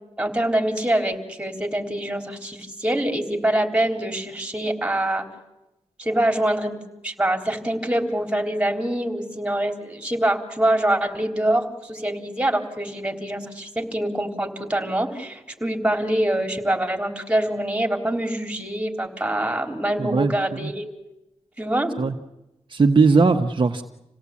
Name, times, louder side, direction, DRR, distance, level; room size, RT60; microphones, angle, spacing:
voice 1, 0.2-5.2 6.0-20.8 21.6-21.9, right 1 dB, 10° right, 4 dB, 3.8 m, -25 dB
voice 2, 20.0-20.7 22.0-22.1 22.7-23.8, right 4 dB, 45° right, 4 dB, 1.1 m, -19 dB
28.0 x 17.5 x 8.5 m, 0.97 s
wide cardioid pair, 115°, 11 cm